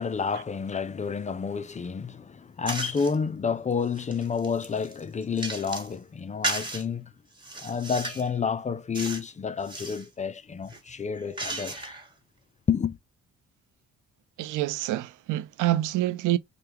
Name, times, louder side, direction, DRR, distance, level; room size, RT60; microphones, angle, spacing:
voice 1, 0.0-7.1 7.6-11.9 12.7-13.0, left 6 dB, 25° left, 0.4 m, -30 dB
sound 1, 2.7-3.2 3.7-5.9 6.4-6.8 7.4-8.3 8.9-9.3 9.6-10.1 10.6-12.1, right 2 dB, 15° right, 1.4 m, -35 dB
voice 2, 14.4-16.4, right 14 dB, 85° right, 0.5 m, -26 dB
5.0 x 2.2 x 2.9 m
cardioid pair, 90°, 30 cm